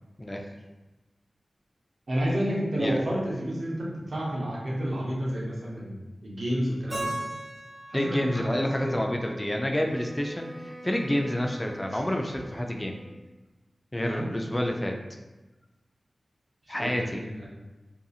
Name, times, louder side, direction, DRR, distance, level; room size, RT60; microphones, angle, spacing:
voice 1, 0.2-0.5 2.8-3.0 7.9-13.0 13.9-15.0 16.7-17.2, left 1 dB, 20° left, 2 dB, 0.3 m, -28 dB
voice 2, 2.1-6.0 6.2-7.1 7.9-9.1 14.0-14.3 16.8-17.5, equal, 70° right, -4 dB, 0.7 m, -30 dB
Keyboard (musical), 6.9-9.9, right 1 dB, 45° right, 1.4 m, -38 dB
Wind instrument woodwind instrument, 9.8-13.4, equal, 15° right, 0.7 m, -45 dB
2.7 x 2.5 x 2.4 m, 1.1 s
cardioid pair, 50°, 0 cm